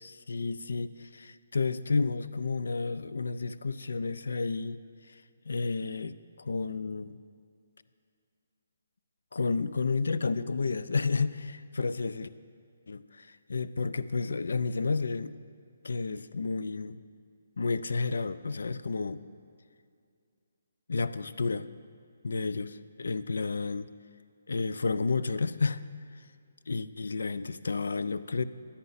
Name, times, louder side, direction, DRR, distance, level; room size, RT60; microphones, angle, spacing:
voice 1, 0.0-4.8 5.1-7.2 9.3-12.3 12.9-15.3 15.8-17.0 17.6-19.2 20.9-21.7 22.2-23.9 24.5-25.9 26.7-28.4, left 4 dB, 85° left, 14 dB, 0.3 m, -31 dB
9.8 x 9.4 x 4.0 m, 2.3 s
hypercardioid pair, 170°, 0 cm